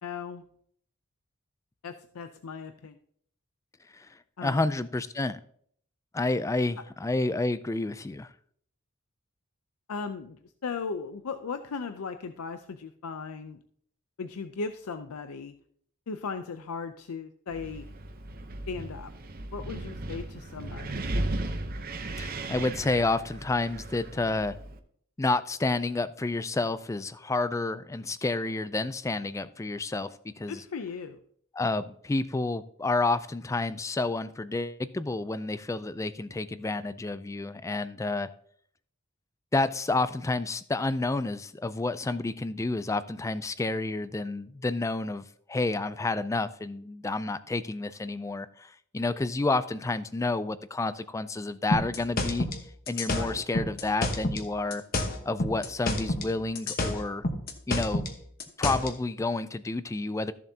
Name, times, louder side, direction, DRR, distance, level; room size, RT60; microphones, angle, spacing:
voice 1, 0.0-0.4 1.8-3.0 4.4-4.6 9.9-13.6 14.2-15.5 16.1-17.9 18.7-19.1 19.5-21.0 30.5-31.2 53.1-53.4, left 5 dB, 85° left, 9 dB, 0.5 m, -37 dB
voice 2, 4.4-5.4 6.1-8.3 22.2-24.6 25.2-30.1 30.4-30.6 31.5-38.3 39.5-52.5 52.9-54.8 55.2-57.2 57.7-58.0 58.6-60.3, left 2 dB, 15° left, 15 dB, 0.3 m, -30 dB
Wind, 17.5-24.8, right 2 dB, 45° right, 0.8 m, -36 dB
sound 1, 51.7-54.4 54.7-56.3 56.5-58.9, left 1 dB, 45° left, 1.1 m, -29 dB
14.0 x 7.2 x 2.8 m, 0.63 s
head